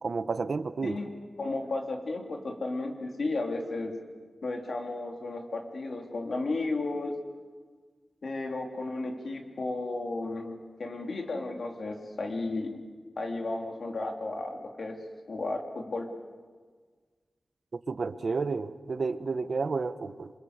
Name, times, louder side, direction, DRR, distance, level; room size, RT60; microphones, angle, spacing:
voice 1, 0.0-1.0 17.7-20.3, right 4 dB, 65° right, 12 dB, 1.1 m, -31 dB
voice 2, 1.4-3.9 4.4-7.2 8.2-12.8 13.2-15.0 15.3-16.1, left 2 dB, 70° left, 3 dB, 3.3 m, -33 dB
27.0 x 25.5 x 8.1 m, 1.5 s
wide cardioid pair, 95°, 0 cm